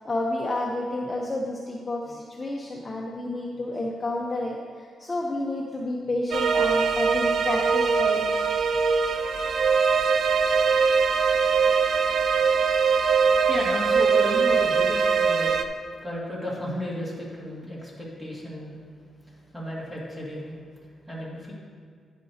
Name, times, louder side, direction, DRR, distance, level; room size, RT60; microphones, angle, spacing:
voice 1, 0.0-8.2, left 2 dB, 20° left, -3 dB, 0.7 m, -30 dB
sound 1, 6.3-15.6, right 5 dB, 55° right, 0.5 m, -22 dB
voice 2, 13.0-15.7 16.0-20.6 20.8-21.5, equal, 10° right, -6 dB, 2.0 m, -34 dB
10.0 x 9.4 x 2.8 m, 2.1 s
wide cardioid pair, 175°, 0 cm